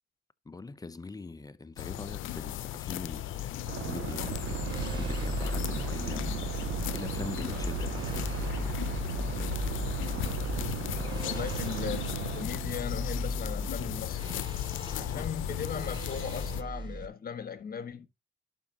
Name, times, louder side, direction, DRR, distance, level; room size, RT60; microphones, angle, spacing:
voice 1, 0.4-6.5 6.9-8.9 15.2-15.3, left 3 dB, 20° left, 0.8 m, -43 dB
sound 1, 1.8-16.6, left 13 dB, 80° left, 0.7 m, -36 dB
sound 2, 3.7-12.5, right 13 dB, 75° right, 0.5 m, -38 dB
sound 3, 4.2-17.1, right 2 dB, 25° right, 2.3 m, -37 dB
voice 2, 11.2-14.5 14.9-18.1, left 7 dB, 50° left, 1.6 m, -38 dB
11.5 x 6.3 x 2.9 m
cardioid pair, 90°, 20 cm